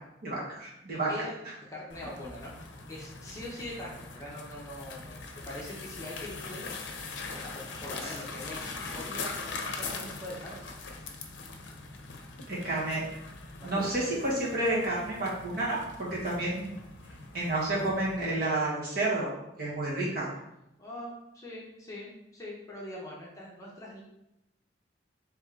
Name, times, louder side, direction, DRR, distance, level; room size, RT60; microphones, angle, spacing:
voice 1, 0.2-1.1 12.5-13.0 13.6-16.7 17.3-19.3 19.6-20.3, right 2 dB, 50° right, -7 dB, 1.4 m, -30 dB
voice 2, 1.7-2.5 2.9-6.7 7.3-10.6 13.6-13.9 20.8-24.0, left 1 dB, 15° left, -5 dB, 0.7 m, -42 dB
sound 1, 1.9-18.4, left 3 dB, 75° left, 0.6 m, -42 dB
3.6 x 3.2 x 3.6 m, 0.87 s
head